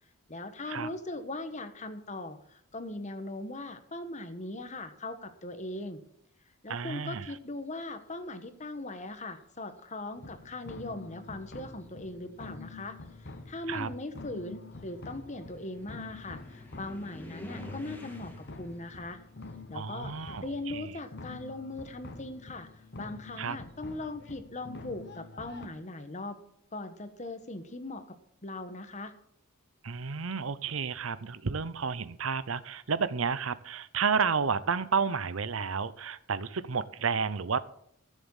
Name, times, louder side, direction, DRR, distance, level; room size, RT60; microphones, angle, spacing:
voice 1, 0.3-6.0 6.6-13.0 13.5-19.2 19.7-22.7 23.0-26.4 26.7-28.2 28.4-29.1, left 2 dB, 35° left, 9 dB, 1.3 m, -40 dB
voice 2, 6.7-7.3 13.7-13.9 19.7-20.9 23.4-23.6 29.8-37.7, right 5 dB, 75° right, 15 dB, 0.7 m, -31 dB
sound 1, 8.8-9.4 10.3-10.4 11.0-20.9 21.2-23.8, left 1 dB, 10° left, 2.0 m, -52 dB
sound 2, 10.2-25.7, left 3 dB, 55° left, 1.2 m, -47 dB
14.5 x 7.3 x 7.2 m, 0.70 s
head